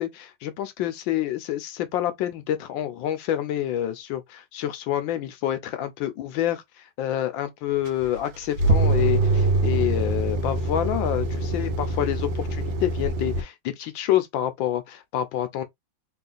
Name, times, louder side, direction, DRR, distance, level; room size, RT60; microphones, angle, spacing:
voice 1, 0.0-15.6, left 12 dB, 80° left, 1.4 m, -28 dB
sound 1, 7.9-13.4, right 2 dB, 80° right, 1.7 m, -24 dB
3.7 x 2.5 x 3.8 m
omnidirectional pair, 2.1 m